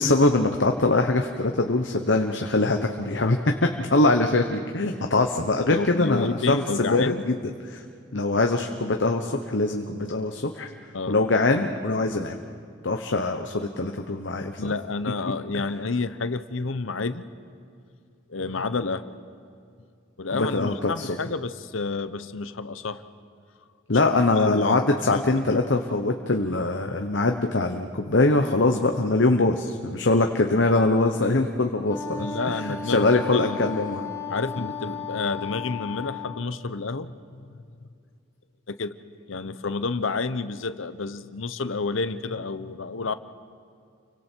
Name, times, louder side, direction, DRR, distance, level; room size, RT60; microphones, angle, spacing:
voice 1, 0.0-7.4 7.7-7.8 8.1-10.7 11.1-12.4 12.8-14.7 20.3-21.2 23.9-34.1 34.6-34.7, left 2 dB, 65° left, 4 dB, 1.1 m, -23 dB
voice 2, 5.7-7.2 10.9-11.2 14.6-17.3 18.3-19.1 20.2-23.0 24.3-24.8 25.1-25.4 32.2-33.7 34.3-37.6 38.8-38.9 39.3-43.1, left 4 dB, 85° left, 12 dB, 0.9 m, -30 dB
Wind instrument woodwind instrument, 31.9-36.5, left 6 dB, 15° left, 1.5 m, -35 dB
30.0 x 24.0 x 4.6 m, 2.4 s
head